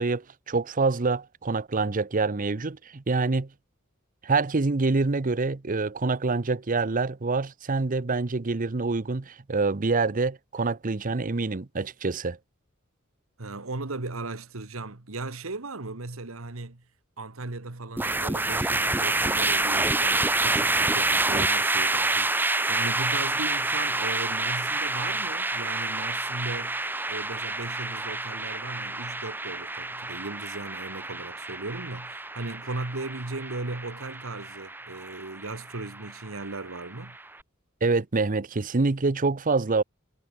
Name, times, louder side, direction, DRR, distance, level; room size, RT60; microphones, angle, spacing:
voice 1, 0.0-3.5 4.2-12.4 37.8-39.8, right 3 dB, 40° right, 0.8 m, -26 dB
voice 2, 13.4-16.8 17.2-37.2, right 3 dB, 90° right, 1.6 m, -37 dB
sound 1, 18.0-37.2, right 2 dB, 10° right, 0.8 m, -28 dB
head